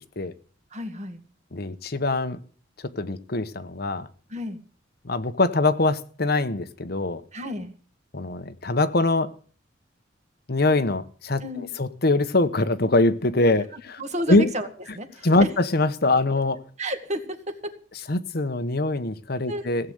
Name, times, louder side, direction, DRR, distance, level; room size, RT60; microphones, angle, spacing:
voice 1, 0.7-1.2 4.3-4.6 7.3-7.7 11.4-11.7 13.7-14.7 14.9-15.5 16.8-17.7 19.5-19.7, equal, 35° right, 7 dB, 1.8 m, -31 dB
voice 2, 1.5-2.4 2.8-4.1 5.0-7.2 8.1-9.3 10.5-14.0 14.3-14.5 15.2-16.6 18.1-19.9, left 2 dB, 55° left, 11 dB, 1.0 m, -23 dB
16.5 x 8.0 x 7.9 m, 0.42 s
head